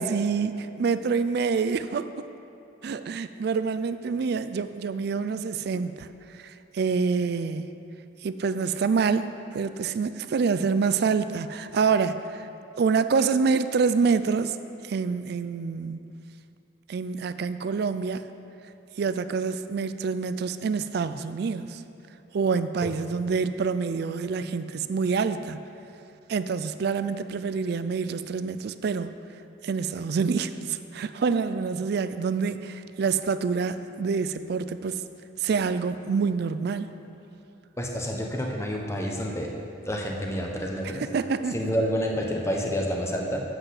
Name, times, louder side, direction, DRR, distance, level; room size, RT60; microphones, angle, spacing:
voice 1, 0.0-2.1 2.8-6.1 6.3-7.7 8.2-12.5 12.8-14.6 14.8-16.1 16.9-18.3 19.0-21.8 22.3-25.6 26.3-29.1 29.6-35.0 35.4-36.9 41.1-41.7, right 5 dB, 60° right, 12 dB, 0.4 m, -26 dB
voice 2, 37.8-39.5 39.9-41.0 41.5-43.4, equal, 15° left, 0 dB, 1.0 m, -28 dB
7.9 x 6.2 x 7.5 m, 2.7 s
head